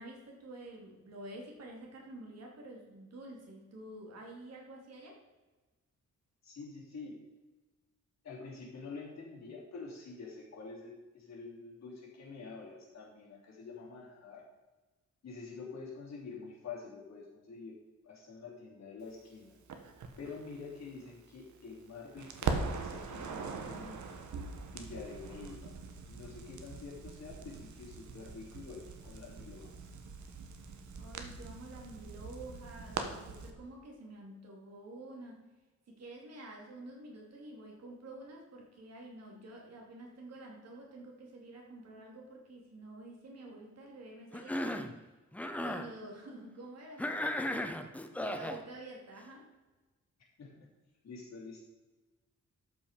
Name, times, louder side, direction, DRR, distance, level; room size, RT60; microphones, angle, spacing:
voice 1, 0.0-5.2 31.0-35.5 35.9-44.9 45.6-47.1 48.2-49.5, right 2 dB, 60° right, -1 dB, 2.6 m, -49 dB
voice 2, 6.4-7.2 8.2-14.4 15.2-17.8 18.0-19.6 20.2-24.1 24.7-25.7 26.1-29.7 50.4-50.7 51.0-51.6, left 4 dB, 65° left, -4 dB, 3.3 m, -47 dB
Crackle, 19.7-21.8 22.2-33.5, right 4 dB, 80° right, 1.2 m, -41 dB
Cough, 44.3-44.9 45.3-45.9 47.0-48.6, left 1 dB, 5° left, 0.6 m, -35 dB
12.5 x 5.6 x 5.1 m, 1.2 s
wide cardioid pair, 170°, 29 cm